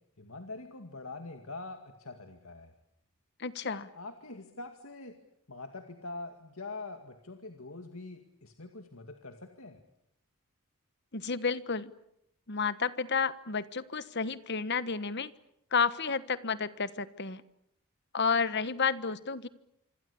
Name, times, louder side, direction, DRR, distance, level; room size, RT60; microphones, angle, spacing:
voice 1, 0.2-2.7 3.6-5.2 5.5-9.8, left 3 dB, 70° left, 6 dB, 2.2 m, -44 dB
voice 2, 3.4-3.8 11.1-11.9 12.5-15.3 15.7-17.4 18.1-19.5, left 5 dB, 50° left, 14 dB, 1.3 m, -31 dB
26.5 x 26.0 x 8.5 m, 0.77 s
head